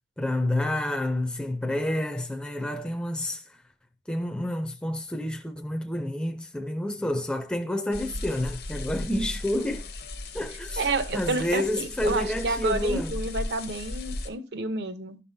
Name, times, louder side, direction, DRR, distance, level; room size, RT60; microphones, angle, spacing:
voice 1, 0.2-3.6 4.1-9.9 10.3-13.1, left 1 dB, 5° left, 0.5 m, -29 dB
sound 1, 7.9-14.3, left 2 dB, 60° left, 0.9 m, -36 dB
voice 2, 10.8-15.2, right 3 dB, 65° right, 0.7 m, -30 dB
11.0 x 5.4 x 2.6 m
head